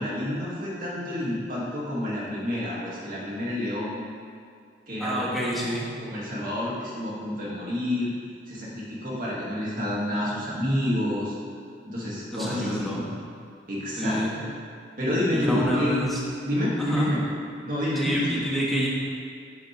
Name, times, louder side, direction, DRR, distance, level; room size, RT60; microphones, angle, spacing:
voice 1, 0.0-4.0 4.9-8.1 8.5-11.3 11.9-13.1 13.7-14.5 15.0-16.1 16.4-17.2 17.6-18.4, left 1 dB, 45° right, -6 dB, 2.2 m, -29 dB
voice 2, 5.0-5.9 12.3-13.1 14.0-14.4 15.3-16.2 16.8-17.1 18.0-18.9, equal, ahead, -6 dB, 1.4 m, -28 dB
10.0 x 7.9 x 3.4 m, 2.2 s
head